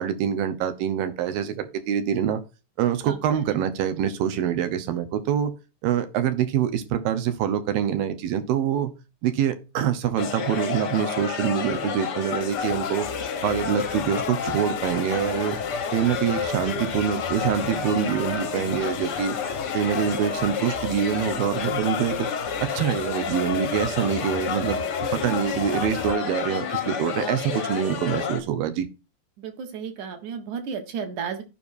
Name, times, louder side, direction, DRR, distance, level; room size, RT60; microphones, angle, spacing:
voice 1, 0.0-2.4 2.8-5.5 5.8-8.9 9.2-13.1 13.4-15.6 15.9-19.4 19.7-22.3 22.6-28.9, right 9 dB, 80° right, 2.8 m, -25 dB
voice 2, 3.0-3.4 16.7-16.8 29.4-31.4, right 6 dB, 65° right, 2.5 m, -33 dB
sound 1, 10.2-28.4, left 6 dB, 70° left, 1.0 m, -30 dB
sound 2, 12.4-26.1, left 13 dB, 90° left, 2.4 m, -38 dB
14.5 x 5.4 x 2.6 m
omnidirectional pair, 4.0 m